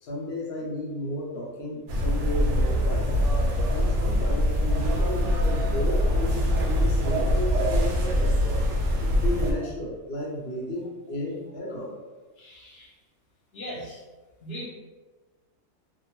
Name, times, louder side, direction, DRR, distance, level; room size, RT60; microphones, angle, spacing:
voice 1, 0.0-3.1 3.7-8.4 9.0-12.0, left 1 dB, 75° left, -3 dB, 0.5 m, -33 dB
sound 1, 1.9-9.5, equal, 70° right, 0.7 m, -23 dB
voice 2, 12.4-12.9 13.5-14.0 14.4-14.7, equal, 55° left, -4 dB, 0.8 m, -39 dB
2.6 x 2.1 x 3.0 m, 1.3 s
omnidirectional pair, 1.6 m